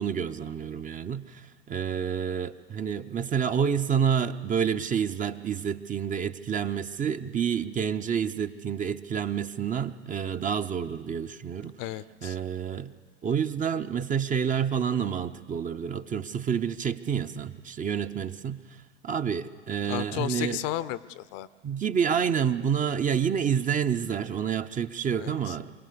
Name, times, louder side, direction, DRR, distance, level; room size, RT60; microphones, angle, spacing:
voice 1, 0.0-11.7 12.2-12.9 13.2-20.6 21.6-25.7, right 7 dB, 25° right, 9 dB, 0.7 m, -28 dB
voice 2, 11.8-12.4 19.8-21.5 25.2-25.6, left 13 dB, 45° left, 17 dB, 0.7 m, -34 dB
25.0 x 17.5 x 6.8 m, 1.5 s
hypercardioid pair, 90°, 35 cm